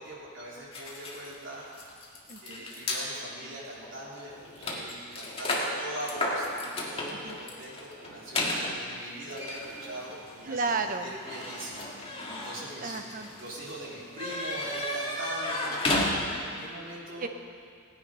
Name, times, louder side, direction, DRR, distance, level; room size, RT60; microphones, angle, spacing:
voice 1, 0.0-1.7 2.4-13.0 13.4-17.3, right 1 dB, 60° right, -6 dB, 3.7 m, -42 dB
sound 1, 0.7-3.0 3.8-3.9 4.2-16.6, left 1 dB, 25° left, 1.9 m, -34 dB
voice 2, 2.3-2.6 7.1-7.4 10.4-11.1 12.8-13.3 17.2-17.3, right 4 dB, 40° right, 6 dB, 0.8 m, -32 dB
17.0 x 9.5 x 5.5 m, 2.2 s
head